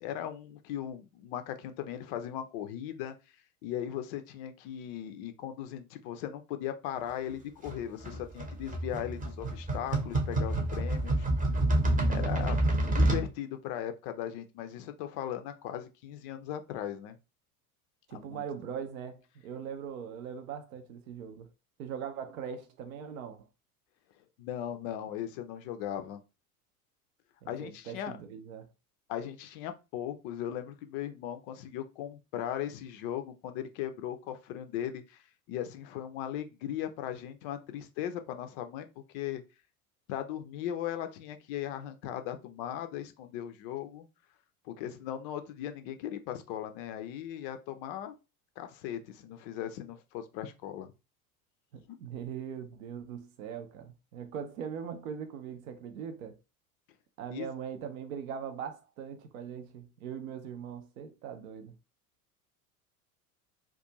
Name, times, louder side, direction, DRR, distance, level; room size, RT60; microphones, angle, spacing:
voice 1, 0.0-3.1 3.6-11.3 12.1-12.6 12.9-17.2 18.1-18.4 24.4-26.2 27.5-28.2 29.1-38.9 39.1-39.4 40.1-44.1 44.6-48.1 48.6-50.9 57.3-57.5, left 10 dB, 40° left, 0.4 m, -38 dB
sound 1, 7.6-13.3, right 1 dB, 20° right, 0.8 m, -28 dB
voice 2, 18.1-21.5 21.8-23.5 27.4-28.7 51.7-56.4 57.2-61.8, right 7 dB, 65° right, 0.6 m, -41 dB
2.4 x 2.3 x 2.8 m
figure-of-eight pair, 80°, 45 cm